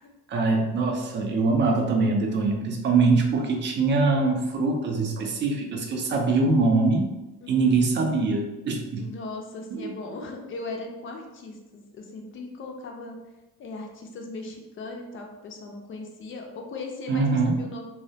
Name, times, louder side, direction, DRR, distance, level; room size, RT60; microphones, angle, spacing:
voice 1, 0.3-7.1 7.5-9.1 9.7-9.9 17.1-17.6, right 3 dB, 35° right, 2 dB, 0.4 m, -23 dB
voice 2, 7.4-7.8 9.0-13.2 13.6-17.8, left 3 dB, 40° left, 2 dB, 0.4 m, -38 dB
2.2 x 2.0 x 2.7 m, 1.0 s
cardioid pair, 110°, 33 cm